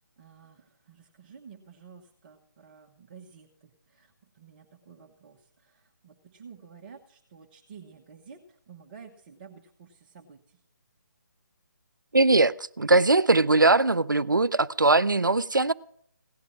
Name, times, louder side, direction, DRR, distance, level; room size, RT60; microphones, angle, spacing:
voice 1, 0.2-10.4, right 6 dB, 30° right, -3 dB, 1.2 m, -51 dB
voice 2, 12.1-15.7, right 2 dB, 80° right, 16 dB, 0.5 m, -21 dB
17.0 x 11.0 x 6.1 m, 0.63 s
figure-of-eight pair, 145°, 10 cm